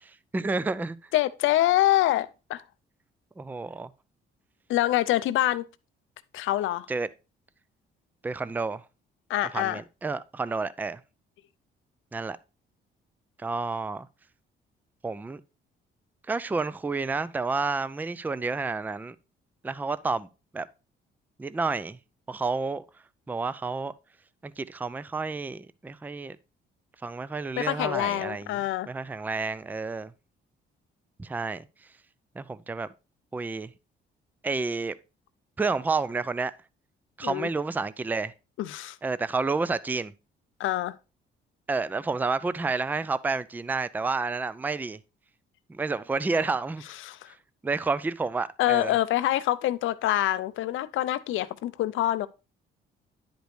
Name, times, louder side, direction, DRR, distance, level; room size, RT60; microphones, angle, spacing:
voice 1, 0.3-1.0 3.4-3.9 6.9-7.1 8.2-8.8 9.5-11.0 12.1-12.4 13.4-14.1 15.0-15.4 16.3-19.2 19.6-20.3 20.5-20.7 21.4-22.0 22.3-22.8 23.3-23.9 24.4-26.4 27.0-28.6 28.9-30.1 31.2-31.6 32.4-32.9 33.3-33.7 34.4-35.0 35.6-36.5 37.2-38.3 39.0-40.1 41.7-45.0 45.7-46.8 47.6-48.9, right 4 dB, 10° right, 0.4 m, -30 dB
voice 2, 1.1-2.6 4.7-5.6 6.3-6.9 9.3-9.8 27.6-28.9 37.2-37.5 38.6-39.0 40.6-41.0 47.0-47.3 48.6-52.3, left 14 dB, 80° left, 0.5 m, -25 dB
10.0 x 5.1 x 3.2 m
cardioid pair, 90°, 20 cm